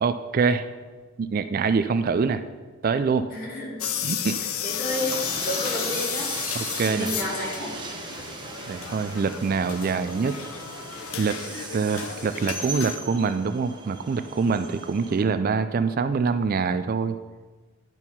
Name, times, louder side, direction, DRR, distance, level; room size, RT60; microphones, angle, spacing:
voice 1, 0.0-0.7 1.2-2.4 2.8-3.3 4.0-4.4 6.5-7.1 8.7-10.4 11.2-11.4 11.7-17.2, right 5 dB, 45° right, 11 dB, 0.3 m, -25 dB
voice 2, 3.3-3.9 4.6-6.3 6.9-7.7, equal, 40° left, -3 dB, 2.4 m, -31 dB
sound 1, 3.8-13.0, left 9 dB, 85° left, 0.6 m, -33 dB
Train, 4.8-15.2, right 3 dB, 20° right, 0.8 m, -38 dB
10.5 x 4.6 x 5.5 m, 1.4 s
head